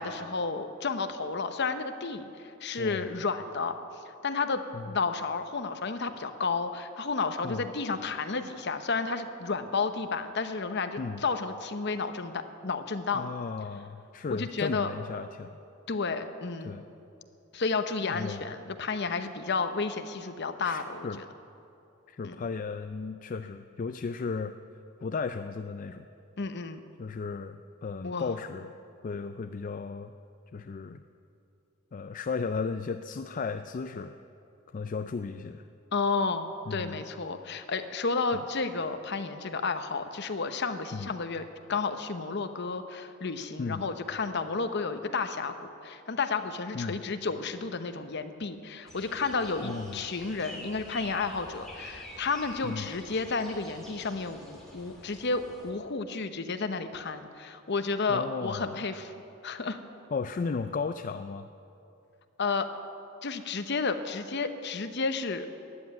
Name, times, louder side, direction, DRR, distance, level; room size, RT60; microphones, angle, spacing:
voice 1, 0.0-3.8 4.2-13.3 14.3-14.9 15.9-16.7 17.5-21.2 22.2-22.4 26.4-26.8 28.0-28.3 35.9-41.4 41.7-59.1 59.4-59.8 62.4-62.7 63.2-65.5, left 4 dB, 55° left, 9 dB, 0.9 m, -32 dB
voice 2, 2.8-3.2 4.7-5.0 7.4-7.7 11.0-11.2 13.1-15.5 16.6-16.8 18.0-18.5 20.6-21.2 22.1-24.5 25.0-26.1 27.0-28.7 29.0-30.1 30.5-31.0 31.9-34.2 34.7-35.7 36.7-37.0 38.3-38.4 40.9-41.1 43.6-43.9 46.7-47.0 49.6-50.0 52.6-52.9 58.1-58.8 60.1-61.5, left 4 dB, 40° left, 9 dB, 0.4 m, -35 dB
sound 1, 48.9-55.7, left 1 dB, ahead, 2.9 m, -47 dB
13.5 x 9.7 x 9.5 m, 2.7 s
head